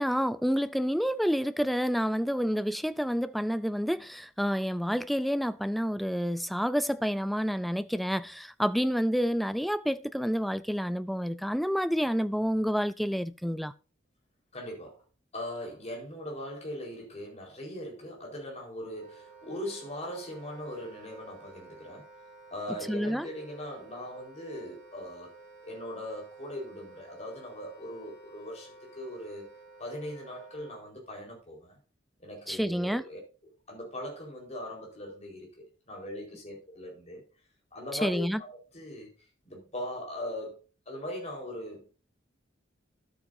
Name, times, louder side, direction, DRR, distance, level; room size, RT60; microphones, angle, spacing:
voice 1, 0.0-13.7 22.9-23.3 32.5-33.0 38.0-38.4, equal, ahead, 0.3 m, -29 dB
voice 2, 14.5-15.0 15.3-22.1 22.5-25.4 25.6-29.5 29.8-31.8 32.2-37.2 37.7-39.1 39.4-41.9, left 1 dB, 35° left, 4.4 m, -40 dB
Wind instrument woodwind instrument, 18.9-30.8, right 3 dB, 55° left, 5.8 m, -52 dB
12.5 x 8.6 x 2.6 m
head